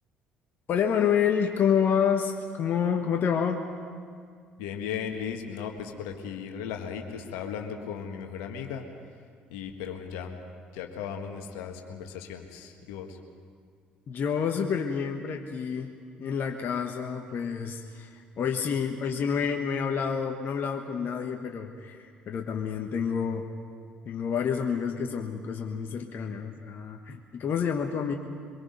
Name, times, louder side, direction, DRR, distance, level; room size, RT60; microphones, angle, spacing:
voice 1, 0.7-3.7 14.1-15.9 16.2-23.5 24.0-28.1, left 7 dB, 50° left, 3 dB, 1.3 m, -28 dB
voice 2, 4.6-8.9 9.5-10.4 10.7-13.2, left 7 dB, 70° left, 4 dB, 1.8 m, -36 dB
24.0 x 22.5 x 5.4 m, 2.1 s
hypercardioid pair, 55°, 5 cm